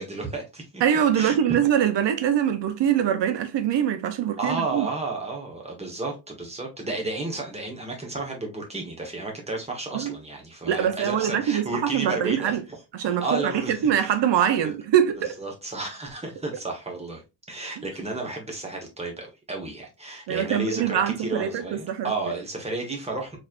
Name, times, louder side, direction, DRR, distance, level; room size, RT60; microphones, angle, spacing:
voice 1, 0.0-0.8 1.1-1.7 4.4-14.1 14.6-14.7 15.4-17.2 17.5-23.4, right 2 dB, 15° right, 1.3 m, -32 dB
voice 2, 0.8-4.9 9.9-10.1 10.7-12.6 13.0-15.4 20.3-22.1, right 9 dB, 85° right, 0.7 m, -23 dB
4.2 x 3.3 x 2.4 m
wide cardioid pair, 145°, 41 cm